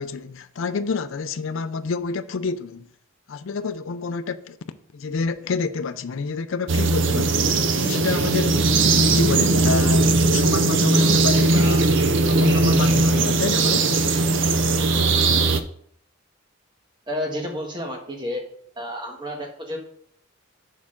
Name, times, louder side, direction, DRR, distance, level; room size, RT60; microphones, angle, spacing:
voice 1, 0.0-2.9 3.3-4.6 4.9-8.7 9.0-13.9, left 4 dB, 65° left, 0.4 m, -28 dB
sound 1, 6.7-15.6, right 3 dB, 60° right, 0.6 m, -19 dB
voice 2, 17.1-18.4 18.8-19.8, left 1 dB, 20° right, 1.4 m, -30 dB
7.1 x 6.5 x 3.7 m
head